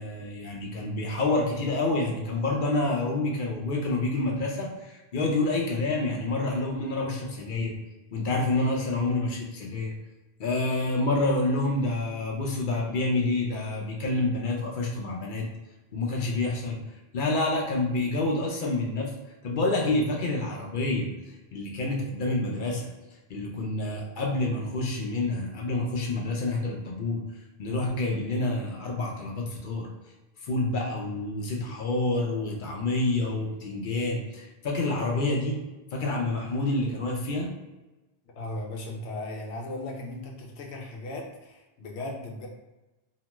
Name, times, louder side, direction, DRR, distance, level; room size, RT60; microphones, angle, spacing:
voice 1, 0.0-7.7 8.1-9.9 10.4-15.5 15.9-16.8 17.1-19.1 19.4-21.1 21.5-22.9 23.3-27.2 27.6-29.9 30.4-35.6 35.9-37.5, left 2 dB, 55° left, -1 dB, 0.7 m, -28 dB
voice 2, 38.4-42.5, left 2 dB, 85° left, 1 dB, 0.9 m, -37 dB
2.8 x 2.2 x 2.9 m, 1.1 s
omnidirectional pair, 1.1 m